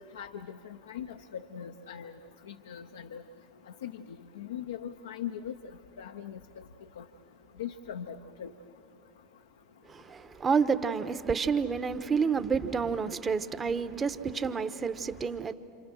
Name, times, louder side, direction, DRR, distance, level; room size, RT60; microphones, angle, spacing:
voice 1, 0.1-0.6 0.9-2.1 2.5-3.2 3.8-3.9 4.4-5.5 6.0-6.4 7.0-7.1 7.6-8.5, left 9 dB, 80° left, 0.7 m, -40 dB
voice 2, 9.9-15.5, right 5 dB, 25° right, 1.2 m, -29 dB
28.0 x 27.5 x 6.4 m
hypercardioid pair, 85°, 0 cm